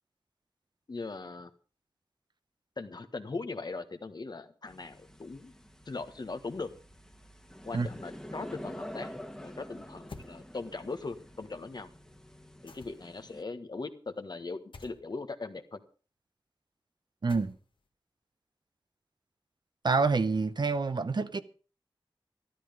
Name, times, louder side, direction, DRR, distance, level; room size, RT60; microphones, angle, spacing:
voice 1, 0.9-1.5 2.8-5.5 5.9-6.7 7.6-9.1 9.4-11.9 12.6-15.8, left 3 dB, 55° left, 1.5 m, -39 dB
sound 1, 4.7-13.4, left 1 dB, 10° left, 1.6 m, -47 dB
sound 2, 10.1-10.3 12.7-13.2 14.7-15.0 17.3-17.8, left 4 dB, 80° left, 1.7 m, -48 dB
voice 2, 17.2-17.5 19.8-21.4, right 4 dB, 60° right, 0.9 m, -27 dB
13.0 x 13.0 x 5.2 m
wide cardioid pair, 80°, 9 cm